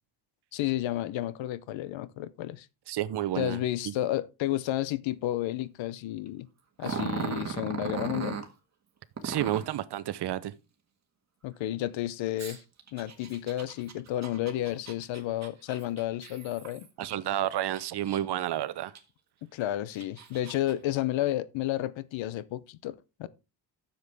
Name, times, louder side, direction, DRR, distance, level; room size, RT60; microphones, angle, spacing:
voice 1, 0.5-2.7 3.4-6.5 6.8-8.4 11.4-12.6 12.9-16.9 19.4-23.3, left 14 dB, 85° left, 0.8 m, -31 dB
voice 2, 2.9-3.6 3.8-3.9 9.2-10.5 17.0-18.9, right 12 dB, 60° right, 0.8 m, -30 dB
Growling, 6.8-8.5 9.2-9.8 12.4-17.2 17.6-18.4 19.0-19.1 19.7-20.7, right 6 dB, 35° right, 1.7 m, -37 dB
9.8 x 7.2 x 3.5 m
cardioid pair, 100°, 44 cm